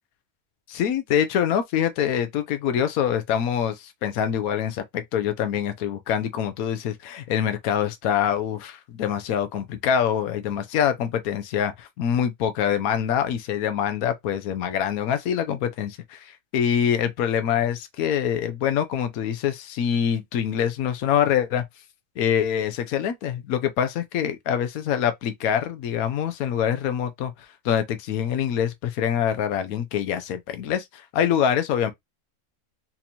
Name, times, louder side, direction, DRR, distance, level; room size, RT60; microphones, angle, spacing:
voice 1, 0.7-21.6 22.2-31.9, left 9 dB, 80° left, 1.1 m, -25 dB
4.2 x 2.7 x 2.8 m
omnidirectional pair, 1.5 m